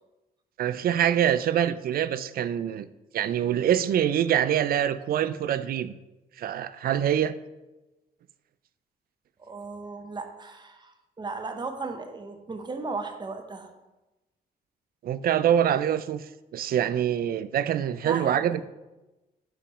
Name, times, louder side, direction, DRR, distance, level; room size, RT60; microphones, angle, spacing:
voice 1, 0.6-2.9 3.1-5.9 6.4-7.4 15.0-18.6, right 10 dB, 60° right, 14 dB, 0.4 m, -25 dB
voice 2, 9.4-13.7 18.0-18.6, right 3 dB, 25° right, 5 dB, 0.8 m, -36 dB
6.0 x 5.0 x 4.7 m, 1.0 s
cardioid pair, 125°, 17 cm